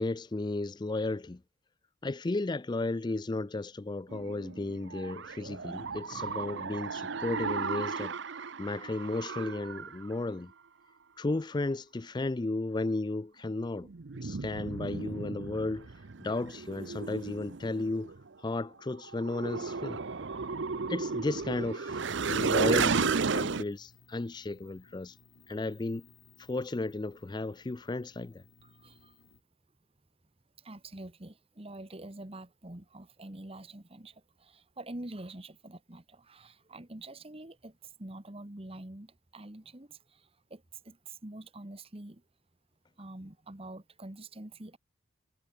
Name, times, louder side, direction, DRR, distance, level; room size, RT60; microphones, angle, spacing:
voice 1, 0.0-1.4 2.0-10.5 11.2-13.9 14.1-18.1 18.4-20.0 20.9-25.2 25.5-26.1 26.4-28.4, left 2 dB, 20° left, 0.4 m, -34 dB
sound 1, 4.1-10.1 13.8-18.3 19.0-23.6, right 4 dB, 55° right, 0.7 m, -34 dB
sound 2, 22.0-29.4, left 4 dB, 70° left, 3.3 m, -61 dB
voice 2, 28.6-29.2 30.6-42.2 43.0-44.8, right 1 dB, 25° right, 1.4 m, -46 dB
head